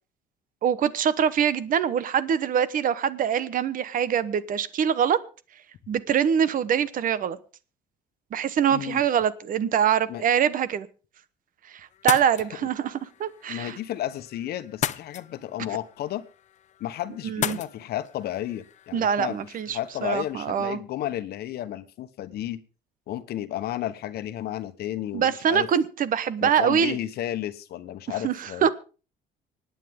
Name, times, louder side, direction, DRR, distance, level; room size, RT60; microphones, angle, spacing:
voice 1, 0.6-5.2 5.9-7.4 8.3-10.9 11.7-13.8 17.2-17.6 18.9-20.8 25.1-27.0 28.2-28.7, right 8 dB, 55° right, 16 dB, 1.0 m, -24 dB
voice 2, 8.7-9.0 10.1-10.2 12.6-12.7 13.5-16.2 16.8-19.4 19.7-22.6 23.1-25.7 26.4-28.7, left 12 dB, 70° left, 11 dB, 1.1 m, -32 dB
sound 1, 11.9-20.3, left 10 dB, 45° left, 0.6 m, -37 dB
25.5 x 9.2 x 3.7 m, 0.36 s
cardioid pair, 110°, 17 cm